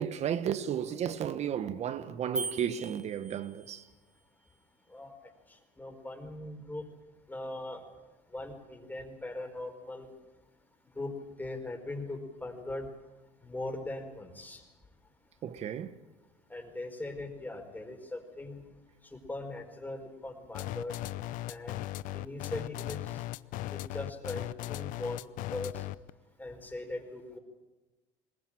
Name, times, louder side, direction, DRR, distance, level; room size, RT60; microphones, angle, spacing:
voice 1, 0.0-3.9 15.4-16.0, right 9 dB, 50° right, 1.3 m, -33 dB
sound 1, 2.4-3.9, right 3 dB, 5° right, 1.9 m, -39 dB
voice 2, 5.8-6.8 7.3-7.8 8.3-10.1 10.9-11.1 11.4-12.9 13.4-14.6 16.5-18.6 19.3-20.9 21.5-21.8 22.1-23.2 23.7-25.8 26.4-27.4, left 2 dB, 10° left, 4.9 m, -40 dB
sound 2, 20.5-26.1, left 15 dB, 65° left, 0.7 m, -37 dB
21.5 x 19.0 x 8.9 m
supercardioid pair, 90°, 15 cm